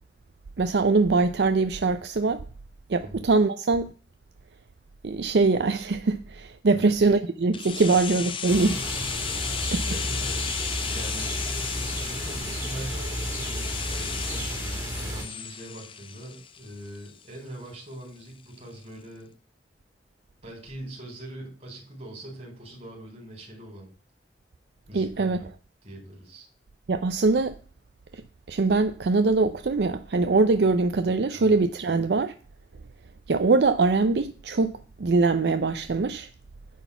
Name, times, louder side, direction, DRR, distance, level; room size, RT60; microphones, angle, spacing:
voice 1, 0.6-2.4 2.9-3.9 5.0-8.7 9.7-9.8 24.9-25.4 26.9-27.5 28.1-28.2 28.5-32.3 33.3-36.3, right 3 dB, 70° right, 0.5 m, -23 dB
voice 2, 6.7-7.2 7.8-8.2 8.7-11.4 12.0-19.3 20.4-23.9 24.9-25.5 25.8-26.5 31.3-31.4, right 1 dB, 40° right, 4.2 m, -42 dB
sound 1, 7.5-17.4 17.7-17.8, left 7 dB, 30° left, 0.6 m, -34 dB
sound 2, 8.5-15.2, right 1 dB, 20° right, 2.5 m, -32 dB
10.0 x 4.2 x 6.8 m
head